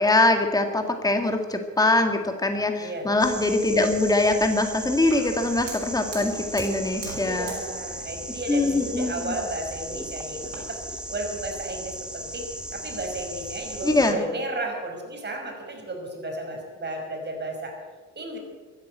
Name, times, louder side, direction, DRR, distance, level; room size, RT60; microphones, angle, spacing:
voice 1, 0.0-7.5 8.5-9.3 13.8-14.2, left 2 dB, 10° left, 5 dB, 1.9 m, -23 dB
voice 2, 2.8-3.1 7.1-17.8 18.2-18.4, right 2 dB, 35° right, 2 dB, 5.4 m, -33 dB
sound 1, 3.2-14.1, equal, 5° right, 1.8 m, -37 dB
Fire, 5.1-10.6, right 4 dB, 90° right, 6.0 m, -44 dB
15.5 x 10.5 x 8.8 m, 1.4 s
cardioid pair, 90°, 30 cm